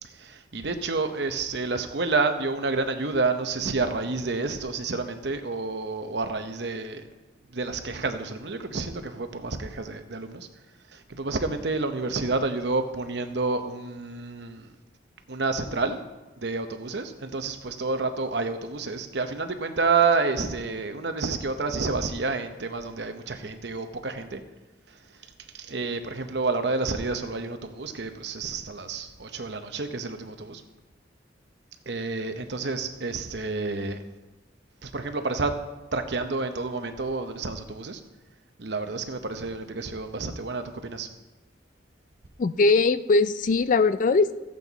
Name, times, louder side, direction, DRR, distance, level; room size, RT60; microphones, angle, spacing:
voice 1, 0.0-7.0 7.5-10.5 10.9-14.7 15.3-16.0 16.4-24.4 25.5-30.6 31.9-34.0 34.8-35.5 35.9-38.0 38.6-41.1, right 3 dB, 65° right, 7 dB, 0.9 m, -29 dB
voice 2, 42.4-44.4, left 3 dB, 45° left, 14 dB, 0.3 m, -21 dB
14.5 x 8.4 x 4.0 m, 1.1 s
head